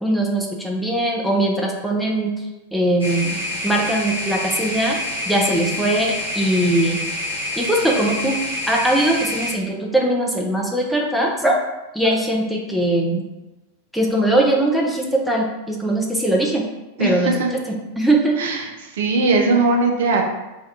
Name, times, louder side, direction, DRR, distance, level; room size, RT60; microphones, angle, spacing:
voice 1, 0.0-2.3 2.7-5.0 5.3-7.0 7.6-8.4 8.7-11.5 11.9-13.2 13.9-16.6 17.0-18.3, right 1 dB, ahead, -2 dB, 0.5 m, -20 dB
sound 1, 3.0-9.5, left 1 dB, 90° right, 0.9 m, -27 dB
voice 2, 17.0-17.5 18.4-20.2, right 3 dB, 60° right, 2 dB, 0.4 m, -19 dB
2.7 x 2.3 x 3.3 m, 1.0 s
figure-of-eight pair, 90°, 0 cm